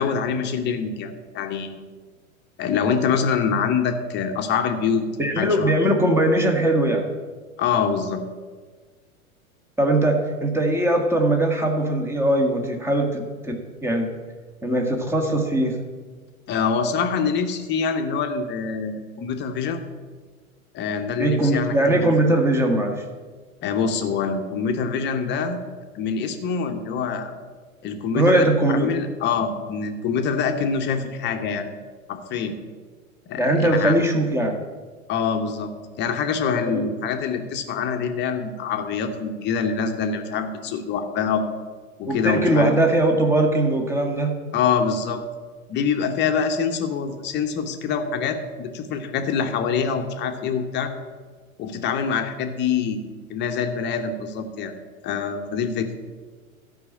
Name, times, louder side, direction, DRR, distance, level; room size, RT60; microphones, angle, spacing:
voice 1, 0.0-1.8 2.6-5.1 5.4-5.7 7.6-8.2 16.5-19.8 20.7-22.1 23.6-25.6 25.9-27.3 27.8-31.7 32.1-32.5 33.3-33.9 35.1-35.7 36.0-41.4 42.0-42.7 44.5-45.2 45.7-50.9 51.6-53.0 53.3-54.7 55.0-55.9, left 6 dB, 25° left, 6 dB, 1.1 m, -25 dB
voice 2, 5.2-7.1 9.8-14.1 14.6-15.7 21.2-23.0 28.1-28.9 33.4-34.6 36.6-36.8 42.1-44.4, right 1 dB, 5° right, 3 dB, 1.4 m, -20 dB
13.0 x 5.6 x 7.2 m, 1.5 s
figure-of-eight pair, 100°, 42 cm